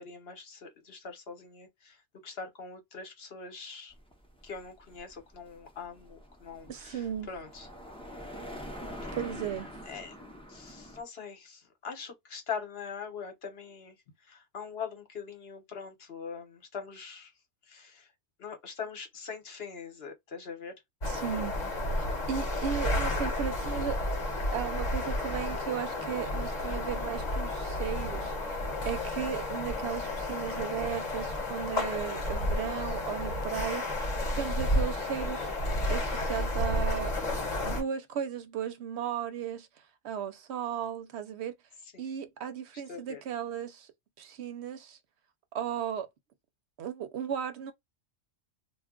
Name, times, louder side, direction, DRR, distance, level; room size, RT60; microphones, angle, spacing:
voice 1, 0.0-3.9 4.4-7.7 9.0-9.1 9.9-10.1 10.5-14.0 14.2-17.3 17.7-18.1 18.4-20.7 42.9-43.2, left 6 dB, 60° left, 1.1 m, -42 dB
sound 1, 3.9-11.0, equal, 5° left, 0.6 m, -45 dB
voice 2, 6.7-7.3 9.1-9.7 21.1-21.6 22.0-24.0 24.5-33.8 34.3-35.5 35.9-37.1 37.6-39.7 40.0-41.5 42.0-43.9 44.2-45.0 45.5-46.1 46.8-47.7, right 9 dB, 70° right, 0.8 m, -35 dB
sound 2, 21.0-37.8, left 1 dB, 40° left, 1.0 m, -31 dB
2.3 x 2.2 x 3.6 m
omnidirectional pair, 1.2 m